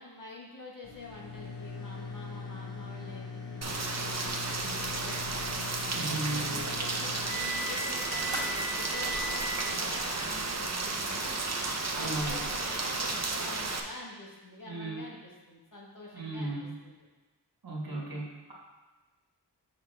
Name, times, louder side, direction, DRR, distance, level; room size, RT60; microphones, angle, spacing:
voice 1, 0.0-5.2 5.8-11.4 11.9-16.6 16.8-17.0, left 2 dB, 50° left, -3 dB, 1.4 m, -46 dB
sound 1, 0.8-11.2, left 2 dB, 75° left, 1.3 m, -40 dB
Rain, 3.6-13.8, right 3 dB, 40° right, 0.7 m, -33 dB
voice 2, 5.9-6.6 11.9-12.5 14.6-15.1 16.1-16.8 17.6-18.5, right 2 dB, 60° right, -4 dB, 1.5 m, -36 dB
Fire, 8.3-9.2 9.7-9.8 10.2-10.4, right 2 dB, 85° right, 1.5 m, -45 dB
6.3 x 5.7 x 3.4 m, 1.2 s
wide cardioid pair, 70°, 42 cm